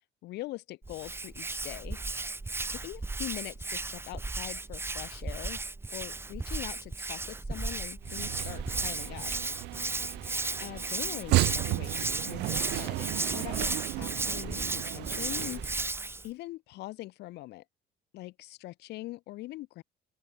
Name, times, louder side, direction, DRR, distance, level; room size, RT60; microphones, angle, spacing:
voice 1, 0.2-2.2 2.7-5.6 5.9-9.3 10.6-13.7 14.0-16.0 16.2-17.6 18.1-19.8, left 18 dB, 80° left, 1.4 m, -42 dB
Hands, 0.8-16.3, right 3 dB, 15° right, 1.4 m, -35 dB
sound 1, 8.0-15.9, right 20 dB, 90° right, 1.9 m, -34 dB
open air
cardioid pair, 110°, 17 cm